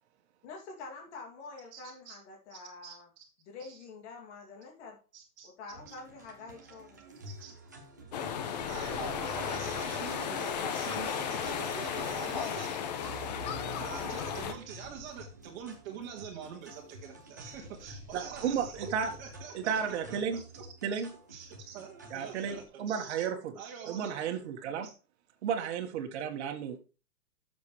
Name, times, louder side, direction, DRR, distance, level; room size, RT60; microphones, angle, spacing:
voice 1, 0.4-3.1 3.4-5.0 5.4-7.0, left 4 dB, 45° left, 0 dB, 2.8 m, -47 dB
voice 2, 1.7-2.2 2.5-3.2 3.6-3.8 5.1-5.5 5.9-6.0 7.2-7.5 8.7-12.8 13.8-21.0 21.3-23.3 23.5-24.2 24.8-24.9, right 7 dB, 30° right, -4 dB, 1.9 m, -45 dB
sound 1, 5.7-22.6, right 1 dB, 15° right, 0.4 m, -49 dB
sound 2, 8.1-14.5, left 8 dB, 30° left, 0.7 m, -35 dB
voice 3, 18.1-19.1 19.5-20.4 20.8-21.1 22.1-23.5 23.9-24.9 25.4-26.8, right 7 dB, 45° right, 5 dB, 1.8 m, -33 dB
10.5 x 7.2 x 3.3 m, 0.33 s
hypercardioid pair, 165°, 46 cm